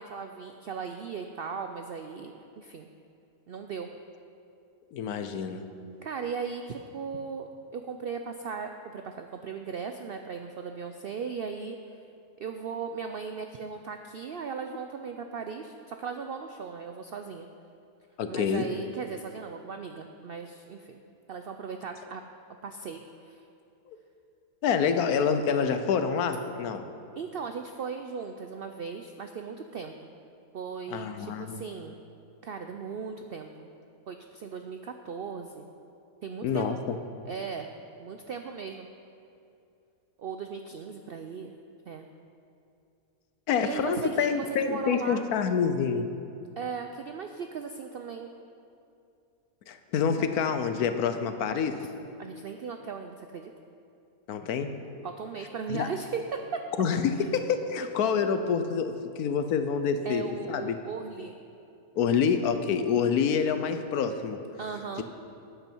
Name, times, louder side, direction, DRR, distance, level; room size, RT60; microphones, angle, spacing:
voice 1, 0.0-2.9 3.5-3.9 6.0-11.8 12.4-17.5 18.3-21.0 21.3-22.2 22.6-23.4 27.1-29.9 30.5-32.0 32.4-33.7 34.1-35.7 36.2-36.6 37.3-37.7 38.0-38.9 40.2-41.6 41.9-42.1 43.6-45.2 46.6-48.3 50.1-50.2 52.2-53.5 55.0-56.6 57.8-57.9 60.0-61.4 64.6-65.1, right 5 dB, 75° right, 5 dB, 0.5 m, -37 dB
voice 2, 4.9-5.6 18.2-18.7 23.9-24.0 24.6-26.8 30.9-31.6 36.4-36.9 43.5-46.1 49.7-51.8 54.3-54.7 55.7-55.9 56.8-60.8 62.0-64.4, left 6 dB, 85° left, 9 dB, 1.2 m, -27 dB
13.0 x 9.2 x 4.5 m, 2.6 s
omnidirectional pair, 1.6 m